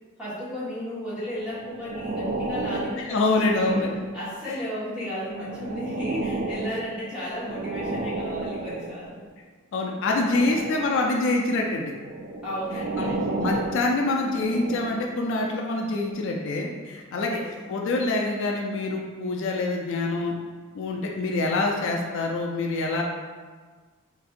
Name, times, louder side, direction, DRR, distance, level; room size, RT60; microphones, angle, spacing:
voice 1, 0.2-3.8 4.1-9.2 12.4-13.4 17.2-17.4, equal, 5° right, -11 dB, 1.2 m, -34 dB
sound 1, 1.3-4.4 5.0-9.2 9.9-11.1 11.9-15.3 15.9-16.1, right 2 dB, 45° right, 0.3 m, -33 dB
voice 2, 3.1-3.9 4.5-4.6 6.7-6.8 9.7-11.9 13.0-17.4 17.7-20.3 20.7-23.0, left 2 dB, 60° left, 0 dB, 0.3 m, -25 dB
4.0 x 2.5 x 2.4 m, 1.5 s
head